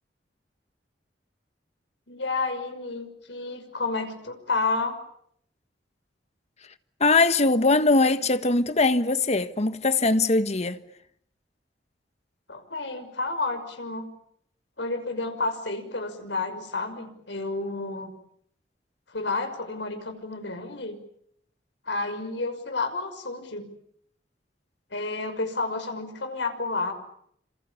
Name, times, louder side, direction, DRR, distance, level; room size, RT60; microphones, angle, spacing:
voice 1, 2.1-5.0 12.5-14.1 14.8-18.1 19.1-21.0 21.9-23.7 24.9-26.9, left 3 dB, 85° left, 5.9 m, -30 dB
voice 2, 7.0-10.8, left 3 dB, 40° left, 1.5 m, -21 dB
28.5 x 27.5 x 7.1 m
head